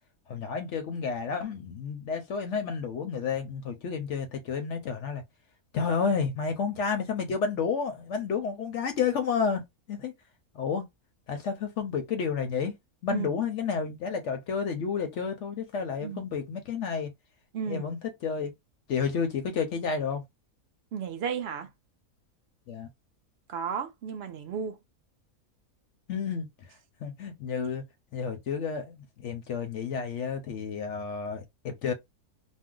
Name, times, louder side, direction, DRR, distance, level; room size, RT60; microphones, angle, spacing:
voice 1, 0.3-5.2 5.7-9.6 9.9-10.1 10.5-10.8 11.3-12.7 13.0-17.1 17.7-18.5 18.9-20.2 22.7-22.9 26.1-26.5 27.0-27.8 28.1-31.9, left 6 dB, 65° left, 0.8 m, -31 dB
voice 2, 17.5-17.9 20.9-21.7 23.5-24.8, right 7 dB, 60° right, 0.7 m, -33 dB
2.6 x 2.0 x 3.6 m
omnidirectional pair, 1.5 m